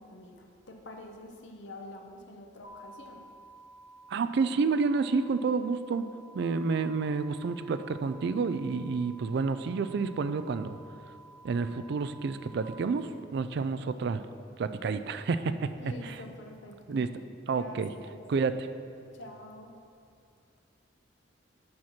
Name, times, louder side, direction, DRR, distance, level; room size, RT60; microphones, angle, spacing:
voice 1, 0.0-3.2 15.8-17.1 17.4-18.2 19.1-19.8, left 1 dB, 65° left, 2 dB, 0.9 m, -47 dB
sound 1, 2.6-12.6, right 2 dB, 30° right, 0.8 m, -53 dB
voice 2, 4.1-6.0 6.3-10.8 11.4-14.2 14.6-16.2 16.9-17.1 17.5-17.9 18.3-18.7, right 4 dB, 55° right, 11 dB, 0.3 m, -29 dB
7.6 x 5.9 x 5.7 m, 2.4 s
head